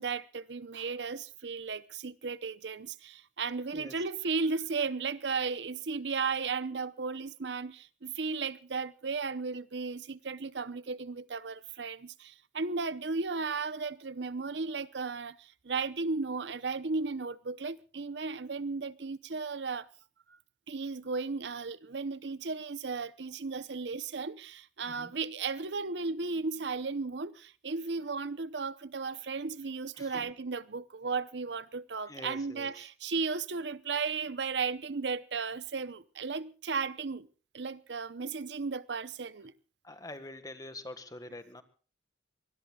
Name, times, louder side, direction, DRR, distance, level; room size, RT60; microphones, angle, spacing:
voice 1, 0.0-19.9 20.3-20.4 20.7-37.3 37.5-39.5, right 4 dB, 70° right, 0.8 m, -35 dB
voice 2, 3.7-4.0 24.9-25.1 30.0-30.3 32.1-32.9 39.8-41.6, left 2 dB, 20° left, 1.6 m, -45 dB
24.0 x 21.0 x 2.4 m
head